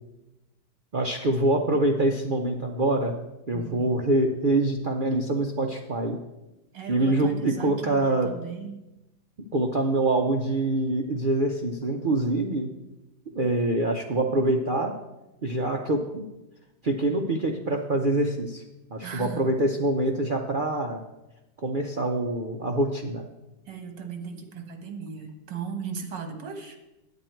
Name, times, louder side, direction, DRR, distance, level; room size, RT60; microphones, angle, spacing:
voice 1, 0.9-3.2 3.5-6.2 6.9-8.3 9.5-12.7 13.3-14.9 15.4-16.3 16.8-18.6 18.9-21.0 21.6-23.3, right 2 dB, 60° right, 2 dB, 0.5 m, -25 dB
voice 2, 3.5-3.9 6.7-8.8 19.0-19.5 23.7-26.8, right 6 dB, 85° right, 5 dB, 2.0 m, -37 dB
9.6 x 8.9 x 4.5 m, 0.96 s
omnidirectional pair, 1.9 m